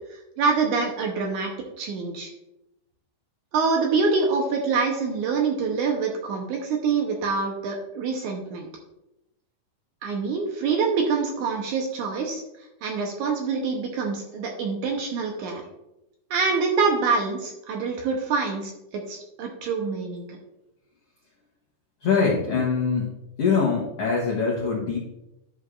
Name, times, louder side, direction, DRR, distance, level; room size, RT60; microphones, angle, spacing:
voice 1, 0.1-1.5 1.8-2.3 3.5-8.7 10.0-12.4 12.8-15.6 16.3-20.4, right 4 dB, 70° right, 1 dB, 2.0 m, -25 dB
voice 2, 22.0-23.1 23.4-25.0, left 5 dB, 75° left, -3 dB, 1.4 m, -23 dB
11.5 x 6.5 x 2.5 m, 0.89 s
omnidirectional pair, 4.2 m